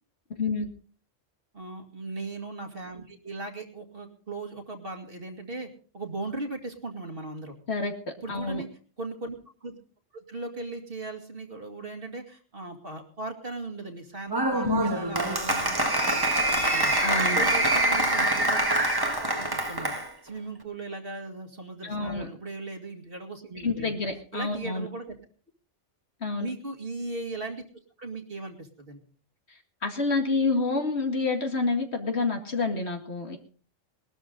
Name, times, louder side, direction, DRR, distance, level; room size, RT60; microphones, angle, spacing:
voice 1, 0.4-0.7 7.7-7.9 8.3-8.6 14.6-15.0 17.0-17.4 21.8-22.3 23.6-24.9 26.2-26.5 29.5-33.4, left 3 dB, 60° left, 4 dB, 2.3 m, -28 dB
voice 2, 1.5-5.7 5.9-7.5 8.2-8.7 9.0-9.4 9.6-9.8 10.1-16.9 17.3-18.7 19.2-19.9 20.2-23.9 24.3-25.1 26.4-27.6 28.0-29.0, right 2 dB, 50° right, 3 dB, 2.3 m, -38 dB
Applause, 14.3-20.1, right 1 dB, 20° right, 1.6 m, -25 dB
20.5 x 12.5 x 3.9 m, 0.41 s
omnidirectional pair, 1.2 m